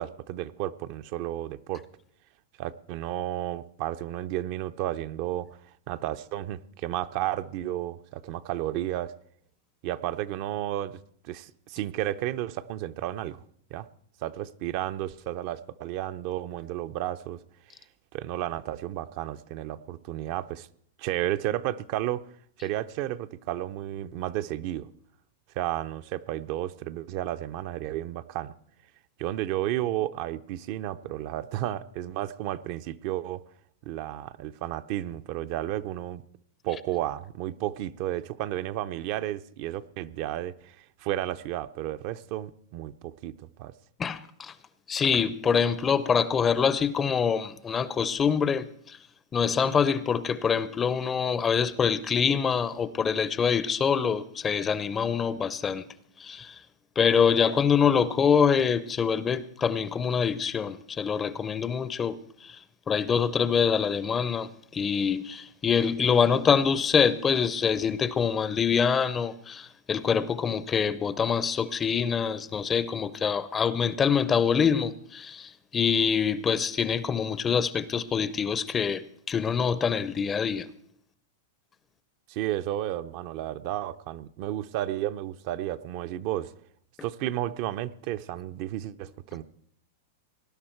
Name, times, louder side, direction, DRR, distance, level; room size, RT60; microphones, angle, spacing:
voice 1, 0.0-1.8 2.6-5.5 5.9-9.1 9.8-11.0 11.2-13.4 13.7-13.9 14.2-17.4 18.1-20.7 21.0-22.2 22.6-24.9 25.6-28.5 29.2-33.4 33.9-36.2 36.6-43.7 82.3-86.5 87.0-89.4, right 13 dB, 45° right, 0.5 m, -32 dB
voice 2, 44.0-44.5 44.9-49.0 49.3-55.9 56.2-56.6 57.0-62.6 62.9-80.7, left 6 dB, 20° left, 0.6 m, -25 dB
19.0 x 11.0 x 4.5 m
supercardioid pair, 150°, 0 cm